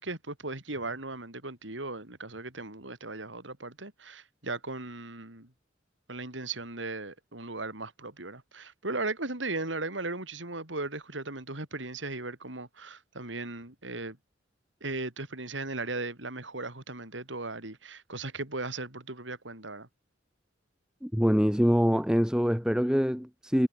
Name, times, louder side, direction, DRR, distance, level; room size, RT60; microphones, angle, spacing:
voice 1, 0.0-5.5 6.1-14.2 14.8-19.9, right 2 dB, 85° right, 4.3 m, -37 dB
voice 2, 21.0-23.7, equal, 5° right, 1.8 m, -24 dB
head